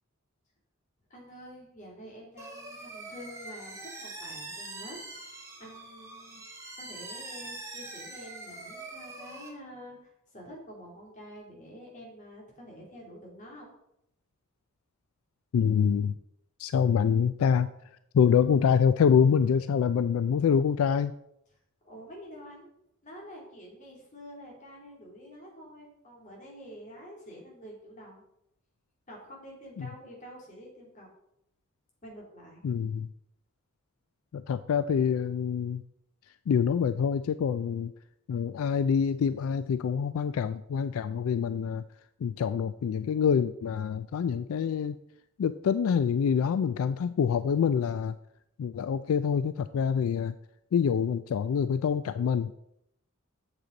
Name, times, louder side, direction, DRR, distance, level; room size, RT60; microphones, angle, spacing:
voice 1, 1.1-5.0 5.6-6.4 6.8-13.7 21.8-22.7 23.0-28.2 29.1-31.1 32.0-32.6, equal, 40° left, -2 dB, 2.8 m, -47 dB
sound 1, 2.4-9.5, right 2 dB, 15° right, 1.5 m, -43 dB
voice 2, 15.5-16.1 16.6-17.7 18.1-21.1 29.8-29.9 32.6-33.1 34.3-35.8 36.5-37.9 38.3-41.8 42.2-45.0 45.4-48.2 48.6-50.3 50.7-52.5, left 7 dB, 85° left, 12 dB, 0.3 m, -26 dB
8.1 x 7.3 x 3.9 m, 0.79 s
head